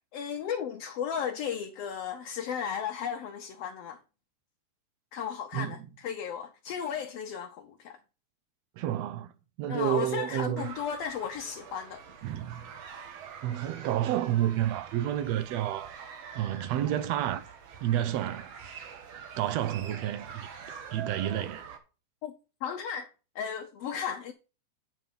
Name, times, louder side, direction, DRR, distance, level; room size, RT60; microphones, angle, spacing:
voice 1, 0.1-4.0 5.1-8.0 9.7-12.0 22.2-22.3 22.6-24.3, left 8 dB, 70° left, 1.6 m, -35 dB
voice 2, 8.8-9.3 9.6-10.7 12.2-12.7 13.4-16.0 16.4-17.5 17.8-18.5 19.4-20.5 20.9-21.7, right 12 dB, 80° right, 1.6 m, -30 dB
sound 1, 10.6-21.8, right 7 dB, 60° right, 2.3 m, -46 dB
8.9 x 5.7 x 5.2 m
omnidirectional pair, 3.4 m